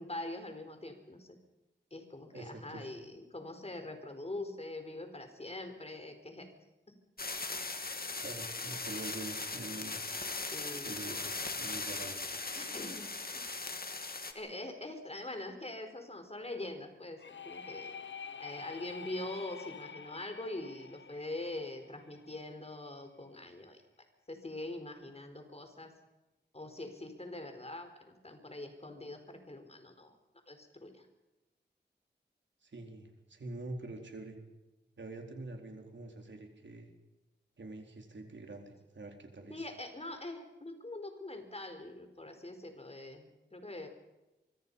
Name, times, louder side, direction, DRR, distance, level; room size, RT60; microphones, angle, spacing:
voice 1, 0.0-1.4 1.9-6.5 6.9-7.0 10.5-11.2 12.5-13.4 14.3-17.9 18.4-23.8 24.3-25.9 26.5-30.1 30.5-31.1 39.5-43.9, left 2 dB, 35° left, 7 dB, 4.5 m, -43 dB
voice 2, 2.3-2.9 8.2-10.0 10.8-12.3 32.6-34.4 35.0-36.9 37.6-39.7, right 2 dB, 80° right, 3 dB, 4.3 m, -45 dB
sound 1, 7.2-14.3, left 3 dB, 55° left, 2.6 m, -39 dB
sound 2, 17.2-22.8, left 6 dB, 85° left, 0.9 m, -48 dB
24.5 x 24.5 x 5.6 m, 1.0 s
wide cardioid pair, 80°, 19 cm